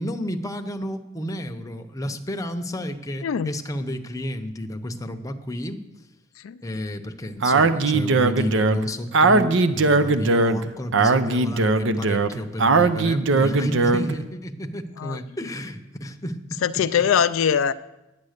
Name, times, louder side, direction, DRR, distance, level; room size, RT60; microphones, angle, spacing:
voice 1, 0.0-5.8 6.6-16.6, left 1 dB, 15° left, 0.8 m, -31 dB
voice 2, 3.2-3.5 6.4-6.6 15.0-15.2 16.6-17.7, left 8 dB, 75° left, 0.4 m, -21 dB
Speech, 7.4-14.2, right 3 dB, 65° right, 0.6 m, -20 dB
10.5 x 9.6 x 6.6 m
head